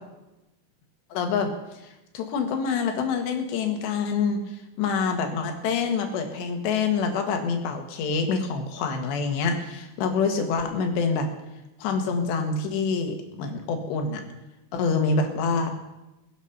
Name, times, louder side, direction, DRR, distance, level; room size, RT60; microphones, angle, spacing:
voice 1, 1.1-1.5 2.1-4.4 4.8-11.3 11.8-14.2 14.7-15.7, left 5 dB, 75° left, 5 dB, 3.6 m, -26 dB
21.0 x 8.2 x 5.8 m, 0.99 s
omnidirectional pair, 5.2 m